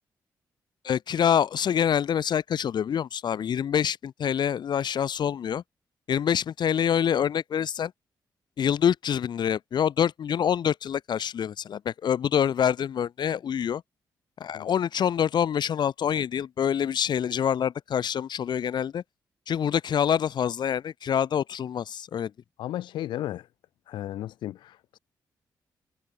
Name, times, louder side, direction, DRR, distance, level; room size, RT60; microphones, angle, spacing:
voice 1, 0.8-5.6 6.1-7.9 8.6-13.8 14.4-19.0 19.5-22.3, left 8 dB, 70° left, 3.4 m, -26 dB
voice 2, 22.6-23.5 23.9-25.0, left 13 dB, 90° left, 3.7 m, -34 dB
cardioid pair, 60°, 8 cm